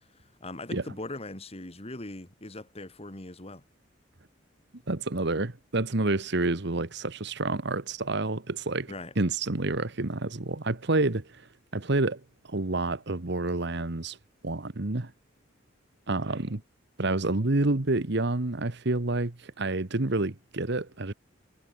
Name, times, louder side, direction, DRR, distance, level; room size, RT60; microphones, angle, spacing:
voice 1, 0.0-3.6 8.9-9.1, left 2 dB, 30° left, 2.6 m, -40 dB
voice 2, 4.9-14.2 14.4-15.1 16.1-16.6 17.0-21.1, right 2 dB, 60° right, 1.4 m, -29 dB
head